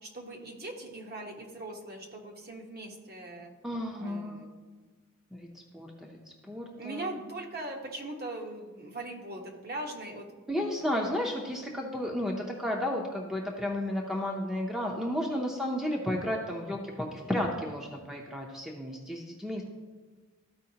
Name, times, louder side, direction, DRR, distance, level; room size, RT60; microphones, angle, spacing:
voice 1, 0.0-3.5 4.0-4.5 5.7-5.8 6.8-10.3 10.5-10.6, right 2 dB, 50° right, -1 dB, 1.2 m, -40 dB
voice 2, 3.6-4.5 5.3-5.5 5.7-6.2 6.5-7.2 10.5-19.6, left 1 dB, ahead, 0 dB, 0.6 m, -33 dB
13.5 x 4.7 x 2.8 m, 1.4 s
head